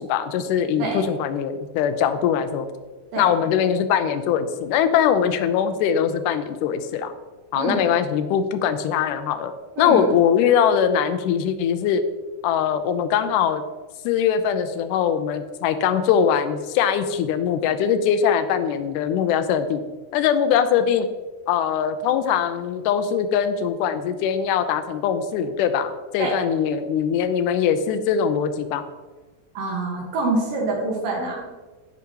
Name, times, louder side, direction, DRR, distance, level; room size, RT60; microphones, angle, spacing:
voice 1, 0.0-2.7 3.2-7.1 7.5-9.5 9.8-12.0 12.4-13.6 14.1-19.8 20.1-21.1 21.5-28.8, left 8 dB, 80° left, 9 dB, 2.0 m, -21 dB
voice 2, 7.5-7.9 9.8-10.1 26.2-26.3 29.5-31.5, right 2 dB, 80° right, -1 dB, 3.1 m, -25 dB
13.5 x 4.8 x 2.9 m, 1.3 s
omnidirectional pair, 4.0 m